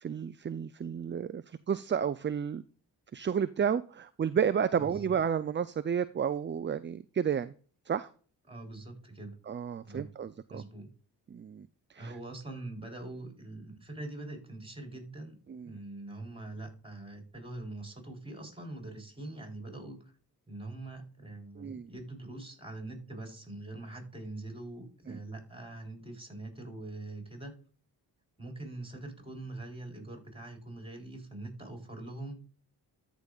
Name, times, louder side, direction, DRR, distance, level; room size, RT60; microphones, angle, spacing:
voice 1, 0.0-2.6 3.1-7.5 7.9-8.1 9.5-10.6 11.3-11.7 11.9-12.1 15.5-15.7 21.6-21.9 25.1-25.2, right 7 dB, 30° right, 14 dB, 0.4 m, -31 dB
voice 2, 4.8-5.2 8.5-9.4 9.8-10.1 10.5-10.9 12.0-15.4 15.6-20.1 20.5-27.5 28.4-32.4, right 2 dB, 10° right, 2 dB, 3.8 m, -43 dB
13.5 x 5.2 x 2.3 m, 0.42 s
cardioid pair, 55°, 44 cm